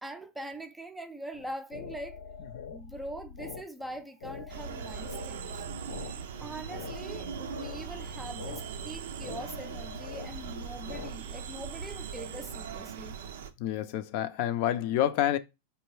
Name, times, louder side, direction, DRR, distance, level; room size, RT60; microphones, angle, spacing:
voice 1, 0.0-2.2 2.7-5.6 6.4-13.2, right 1 dB, 5° right, 0.4 m, -43 dB
sound 1, 1.3-11.1, left 6 dB, 90° left, 0.8 m, -45 dB
sound 2, 4.5-13.5, right 7 dB, 75° right, 0.5 m, -40 dB
voice 2, 13.6-15.4, left 12 dB, 55° left, 0.4 m, -28 dB
4.4 x 2.6 x 3.1 m
supercardioid pair, 130°, 0 cm